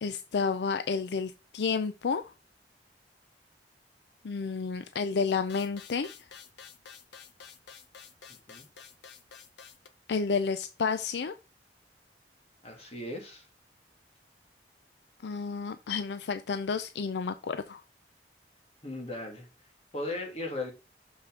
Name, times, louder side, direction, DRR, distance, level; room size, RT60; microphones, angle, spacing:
voice 1, 0.0-2.3 4.2-6.1 10.1-11.3 15.2-17.8, left 5 dB, 70° left, 0.4 m, -31 dB
sound 1, 5.5-9.9, left 7 dB, 85° left, 0.9 m, -50 dB
voice 2, 8.3-8.7 12.6-13.4 18.8-19.5 19.9-20.7, left 2 dB, 35° left, 2.5 m, -37 dB
6.6 x 5.8 x 3.7 m
head